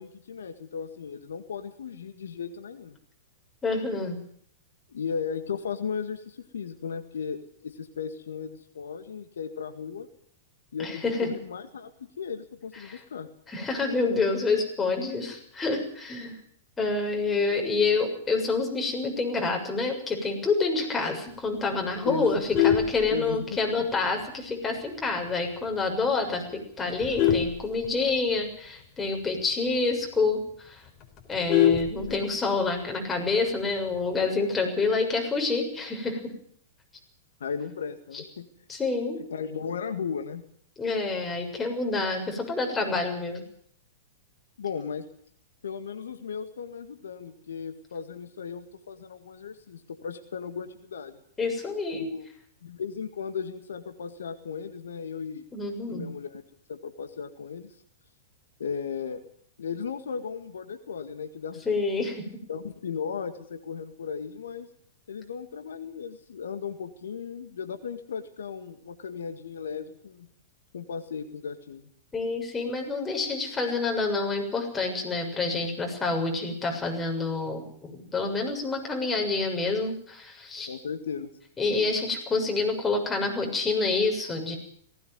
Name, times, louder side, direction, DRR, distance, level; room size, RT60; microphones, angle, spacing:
voice 1, 0.0-3.0 4.9-10.1 10.7-11.9 12.2-13.3 22.1-22.3 23.1-23.9 32.0-32.2 37.4-38.5 39.1-40.4 44.6-45.1 45.6-51.2 51.9-52.3 52.6-55.4 55.9-56.4 56.7-57.8 58.6-59.2 59.6-61.7 62.5-64.7 65.1-70.3 70.7-71.9 80.7-81.4, left 6 dB, 75° left, 8 dB, 1.8 m, -36 dB
voice 2, 3.6-4.2 10.8-11.3 12.9-13.0 13.5-16.4 16.8-30.8 31.3-36.2 38.7-39.2 40.8-43.4 51.4-52.1 55.5-56.1 61.7-62.3 72.1-80.7 81.6-84.6, left 3 dB, 15° left, 2 dB, 6.9 m, -28 dB
Vehicle horn car horn honking, 22.3-23.7 24.2-24.5 24.8-24.9 25.3-25.4 25.7-26.0 26.6-28.4 28.8-28.9 29.2-29.3 29.7-29.8 30.1-30.2 30.5-32.5 33.7-34.2, left 9 dB, 35° left, 4.6 m, -25 dB
19.0 x 17.0 x 9.4 m, 0.63 s
hypercardioid pair, 105°, 0 cm